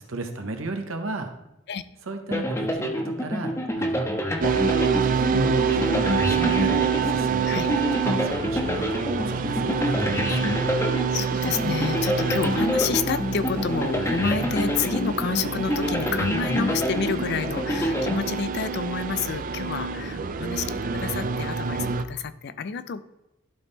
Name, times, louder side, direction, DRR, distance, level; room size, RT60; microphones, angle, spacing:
voice 1, 0.0-1.3 2.1-4.3 4.7-10.6, right 1 dB, 80° right, 5 dB, 1.0 m, -33 dB
sound 1, 2.3-18.9, left 1 dB, 15° left, 0.7 m, -28 dB
sound 2, 4.4-22.0, right 6 dB, 40° right, 0.4 m, -27 dB
voice 2, 11.1-23.0, left 5 dB, 55° left, 13 dB, 0.4 m, -29 dB
11.5 x 4.0 x 3.6 m, 0.90 s
head